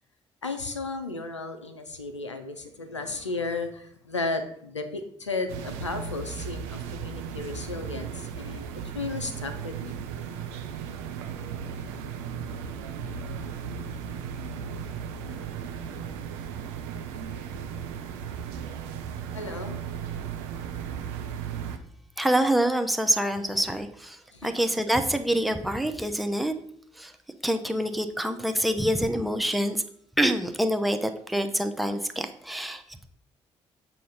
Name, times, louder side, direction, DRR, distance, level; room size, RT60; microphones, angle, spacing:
voice 1, 0.4-8.7 8.9-10.0 19.3-19.8 23.5-23.6 24.3-24.5, left 3 dB, 85° left, 7 dB, 0.5 m, -34 dB
sound 1, 5.5-21.8, right 7 dB, 65° right, 0.5 m, -36 dB
voice 2, 22.2-26.6 26.9-27.1 27.4-29.8 30.2-33.1, right 1 dB, ahead, 7 dB, 0.6 m, -26 dB
7.5 x 2.8 x 5.4 m, 0.65 s
figure-of-eight pair, 45°, 15 cm